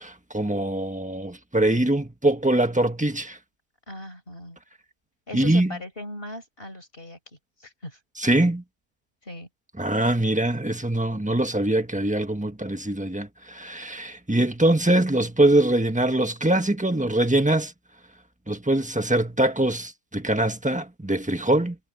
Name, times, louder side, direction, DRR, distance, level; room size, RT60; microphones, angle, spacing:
voice 1, 0.0-3.4 5.3-5.8 8.2-8.6 9.8-17.7 18.5-21.8, right 1 dB, 5° right, 1.3 m, -23 dB
voice 2, 3.9-4.6 5.3-7.2 7.6-8.0 9.2-9.5, left 1 dB, 45° left, 5.9 m, -39 dB
omnidirectional pair, 1.4 m